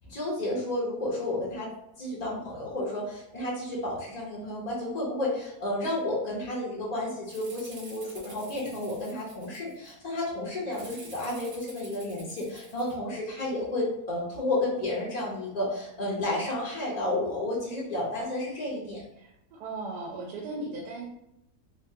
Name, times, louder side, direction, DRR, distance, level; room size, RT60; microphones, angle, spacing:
voice 1, 0.1-1.7 2.0-19.0, left 1 dB, 75° left, -4 dB, 0.3 m, -31 dB
Rattle (instrument), 7.3-9.9 10.7-12.9, right 2 dB, 65° right, 1.2 m, -49 dB
voice 2, 19.2-21.0, right 2 dB, 85° right, -3 dB, 1.2 m, -37 dB
3.1 x 2.3 x 2.7 m, 0.83 s
omnidirectional pair, 1.7 m